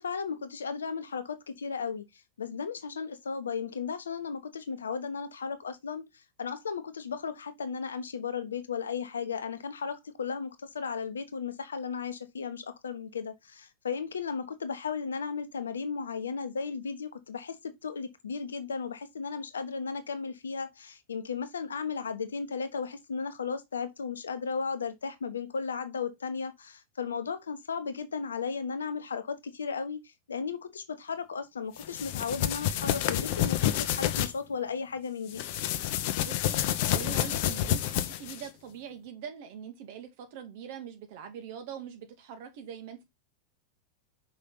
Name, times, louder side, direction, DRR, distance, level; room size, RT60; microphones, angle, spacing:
voice 1, 0.0-2.1 2.4-35.4, left 5 dB, 70° left, 1.0 m, -35 dB
sound 1, 31.8-34.3 35.3-38.5, left 12 dB, 50° left, 0.8 m, -29 dB
voice 2, 36.2-43.0, right 8 dB, 50° right, 2.1 m, -43 dB
5.6 x 5.5 x 3.9 m
figure-of-eight pair, 90°, 0 cm